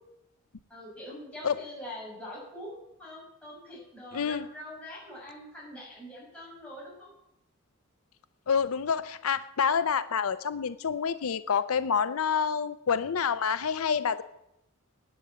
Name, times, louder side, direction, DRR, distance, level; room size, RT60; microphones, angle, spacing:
voice 1, 0.7-7.1, left 1 dB, 5° left, -5 dB, 6.1 m, -44 dB
voice 2, 4.1-4.4 8.5-14.2, left 6 dB, 85° left, 13 dB, 0.6 m, -28 dB
10.5 x 9.6 x 8.0 m, 0.82 s
head